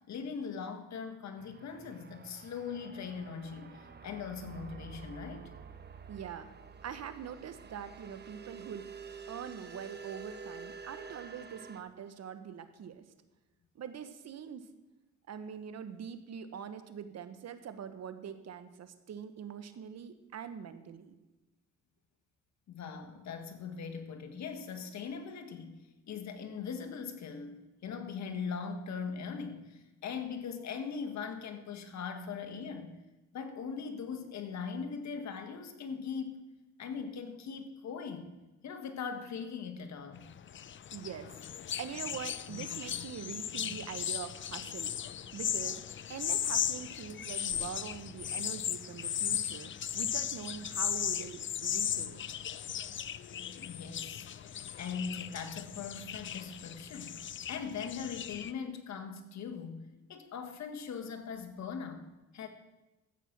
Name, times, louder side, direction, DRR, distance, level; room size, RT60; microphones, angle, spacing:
voice 1, 0.1-5.5 22.7-25.8 26.1-32.9 33.3-36.4 36.8-38.3 38.6-40.3 53.4-62.5, left 6 dB, 65° left, 7 dB, 1.7 m, -40 dB
sound 1, 1.4-11.8, right 5 dB, 35° right, 1.0 m, -49 dB
voice 2, 6.1-6.5 6.8-8.9 9.3-13.0 13.7-14.7 15.3-21.1 40.9-41.3 41.8-44.9 45.3-45.8 46.1-52.2, right 8 dB, 60° right, 10 dB, 1.2 m, -43 dB
sound 2, 40.2-58.5, left 9 dB, 40° left, 0.5 m, -37 dB
13.5 x 8.2 x 6.0 m, 1.1 s
cardioid pair, 90°, 30 cm